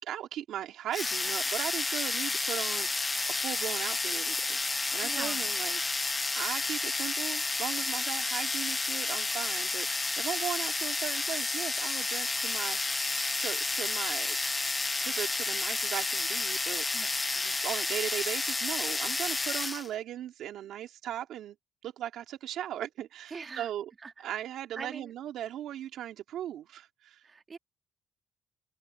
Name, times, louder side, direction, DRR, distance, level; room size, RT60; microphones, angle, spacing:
voice 1, 0.0-2.9 3.3-4.6 4.9-5.8 6.3-13.1 13.4-14.4 15.0-16.8 17.4-21.5 21.8-23.9 24.2-27.2, right 11 dB, 75° right, 2.9 m, -38 dB
sound 1, 0.9-19.9, left 3 dB, 15° left, 1.2 m, -31 dB
voice 2, 5.0-5.5 16.9-17.1 23.3-23.7 24.0-24.1 24.7-25.1 27.2-27.6, right 5 dB, 30° right, 2.9 m, -42 dB
cardioid pair, 150°, 0 cm